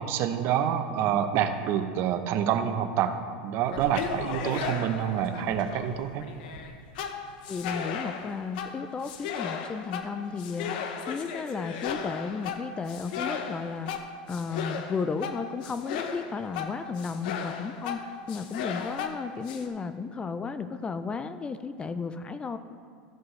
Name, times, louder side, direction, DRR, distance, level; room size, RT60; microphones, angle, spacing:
voice 1, 0.0-3.2 3.4-6.3, right 9 dB, 50° right, 9 dB, 0.7 m, -27 dB
sound 1, 3.6-19.7, left 7 dB, 75° left, 0.8 m, -36 dB
voice 2, 7.5-10.7 11.1-13.9 14.3-22.6, left 5 dB, 20° left, 11 dB, 0.4 m, -34 dB
13.5 x 7.7 x 3.2 m, 2.1 s
supercardioid pair, 120°, 5 cm